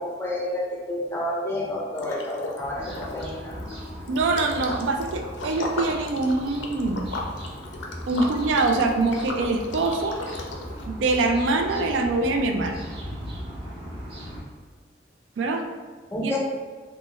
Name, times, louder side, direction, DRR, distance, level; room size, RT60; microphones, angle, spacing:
voice 1, 0.0-3.6 16.1-16.4, left 1 dB, 15° left, -3 dB, 0.4 m, -30 dB
Liquid, 2.0-2.6 2.9-10.9, left 2 dB, 75° left, 0.4 m, -36 dB
sound 1, 2.6-14.4, equal, 30° right, 0.6 m, -38 dB
voice 2, 4.1-7.0 8.1-10.2 10.8-12.8 15.4-15.6 16.2-16.3, right 3 dB, 85° right, 4 dB, 0.3 m, -24 dB
3.3 x 2.1 x 3.0 m, 1.5 s
head